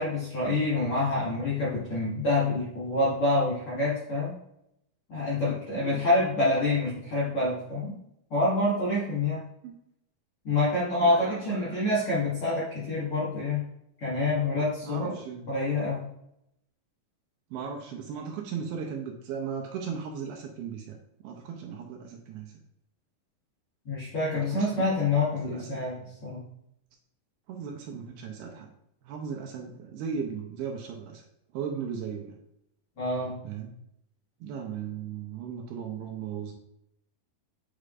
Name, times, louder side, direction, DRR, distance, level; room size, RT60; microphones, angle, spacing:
voice 1, 0.0-4.3 5.1-8.0 8.3-9.4 10.4-13.6 14.0-15.1 15.5-16.0 23.9-26.4 33.0-33.4, left 2 dB, 50° left, -10 dB, 1.7 m, -27 dB
voice 2, 11.0-11.8 14.8-15.5 17.5-21.0 21.2-22.5 24.3-24.9 25.4-25.8 27.5-28.7 29.1-31.2 31.5-32.4 33.4-33.7 34.4-36.5, right 6 dB, 80° right, 2 dB, 2.4 m, -37 dB
7.5 x 4.9 x 2.5 m, 0.77 s
omnidirectional pair, 4.7 m